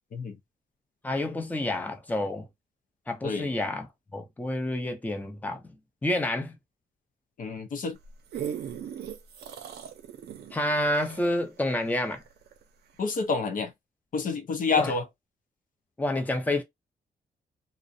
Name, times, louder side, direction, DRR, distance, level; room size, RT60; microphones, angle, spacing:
voice 1, 1.0-2.5 3.1-3.9 4.1-5.6 6.0-6.6 10.5-12.2 14.8-14.9 16.0-16.6, left 1 dB, 10° left, 0.5 m, -28 dB
voice 2, 7.4-8.0 13.0-13.7 14.1-15.0, left 4 dB, 55° left, 0.5 m, -28 dB
sound 1, 8.0-12.6 13.1-13.2, right 9 dB, 75° right, 0.5 m, -39 dB
2.4 x 2.0 x 2.5 m
cardioid pair, 90°, 17 cm